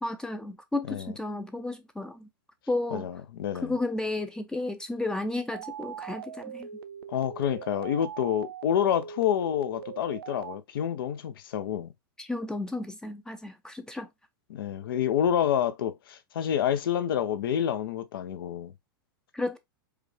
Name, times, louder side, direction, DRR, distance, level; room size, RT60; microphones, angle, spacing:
voice 1, 0.0-2.3 2.7-3.1 3.6-6.7 12.2-14.1 19.3-19.6, left 2 dB, 5° left, 0.5 m, -32 dB
voice 2, 0.9-1.2 2.9-3.8 7.1-11.9 14.5-18.7, left 9 dB, 70° left, 0.7 m, -28 dB
sound 1, 5.5-10.6, right 8 dB, 80° right, 0.5 m, -41 dB
4.8 x 2.4 x 3.2 m
hypercardioid pair, 115°, 12 cm